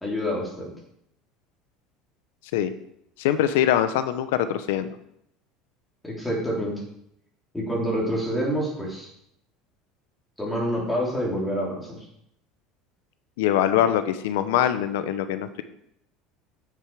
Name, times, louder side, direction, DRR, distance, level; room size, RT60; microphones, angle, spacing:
voice 1, 0.0-0.7 6.0-6.8 7.5-9.1 10.4-12.0, equal, 5° left, -3 dB, 3.3 m, -27 dB
voice 2, 3.2-4.9 13.4-15.6, left 10 dB, 85° left, 11 dB, 0.7 m, -23 dB
9.0 x 6.8 x 4.7 m, 0.75 s
supercardioid pair, 135°, 0 cm